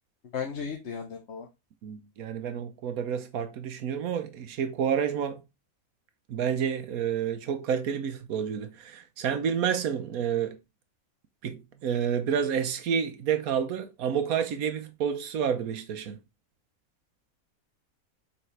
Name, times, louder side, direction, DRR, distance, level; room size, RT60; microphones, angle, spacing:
voice 1, 0.3-1.5, left 6 dB, 55° left, 1.2 m, -35 dB
voice 2, 1.8-5.4 6.3-10.6 11.4-16.2, right 8 dB, 85° right, 1.3 m, -29 dB
7.0 x 4.9 x 3.3 m
omnidirectional pair, 1.5 m